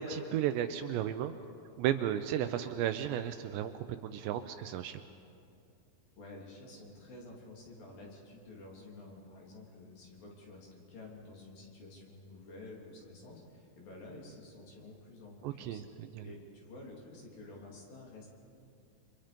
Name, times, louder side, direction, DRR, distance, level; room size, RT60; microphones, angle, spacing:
voice 1, 0.0-1.3 1.8-3.7 4.0-5.0 15.4-16.2, right 10 dB, 80° right, 9 dB, 2.7 m, -34 dB
voice 2, 6.2-15.8 16.2-18.3, left 2 dB, 50° left, -2 dB, 4.8 m, -50 dB
29.5 x 25.5 x 5.2 m, 2.6 s
omnidirectional pair, 5.4 m